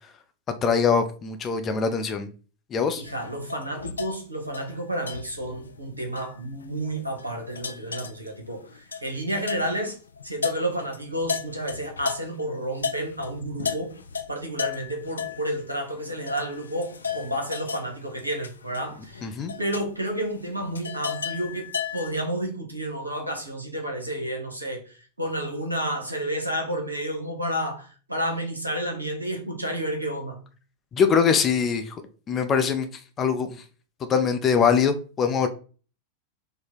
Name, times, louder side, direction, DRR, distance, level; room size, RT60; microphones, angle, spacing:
voice 1, 0.6-2.3 2.7-3.0 19.2-19.5 30.9-32.0 32.3-32.9 33.2-33.6 34.0-35.5, left 6 dB, 25° left, 0.6 m, -22 dB
voice 2, 2.9-10.0 10.2-13.9 14.3-30.4, right 1 dB, 85° right, 1.0 m, -31 dB
sound 1, 3.0-12.4 12.8-22.1, left 6 dB, 75° left, 0.4 m, -35 dB
3.9 x 2.2 x 4.3 m
figure-of-eight pair, 90°, 0 cm